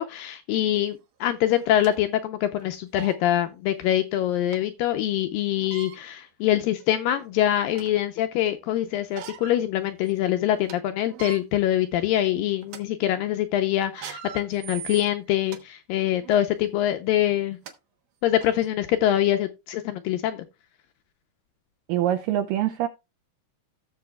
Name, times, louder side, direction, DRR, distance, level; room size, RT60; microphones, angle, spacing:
voice 1, 0.0-17.6 18.2-20.5, left 12 dB, 80° left, 2.1 m, -24 dB
sound 1, 0.8-0.9 1.5-2.0 2.6-2.7 3.0-3.2 4.5-4.6 5.6-6.0 6.7-6.8 7.3-8.0 9.0-9.6 10.0-10.1 10.5-10.7 11.1-11.4 12.0-12.2 12.6-12.8 13.8-15.6 16.2-16.4 17.3-17.4 17.7-17.8 18.4-18.5, right 9 dB, 65° right, 2.3 m, -41 dB
voice 2, 21.9-22.9, right 12 dB, 85° right, 2.0 m, -24 dB
15.5 x 7.0 x 2.2 m
omnidirectional pair, 4.6 m